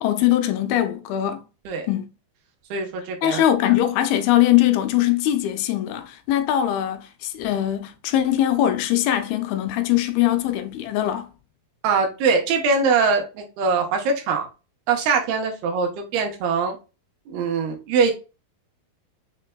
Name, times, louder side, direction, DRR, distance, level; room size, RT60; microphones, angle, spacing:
voice 1, 0.0-1.4 1.9-2.1 3.2-11.3, left 12 dB, 85° left, 2.4 m, -21 dB
voice 2, 2.7-3.4 11.8-14.5 14.9-16.8 17.3-18.1, right 5 dB, 80° right, 2.9 m, -22 dB
6.4 x 3.3 x 2.2 m
omnidirectional pair, 4.5 m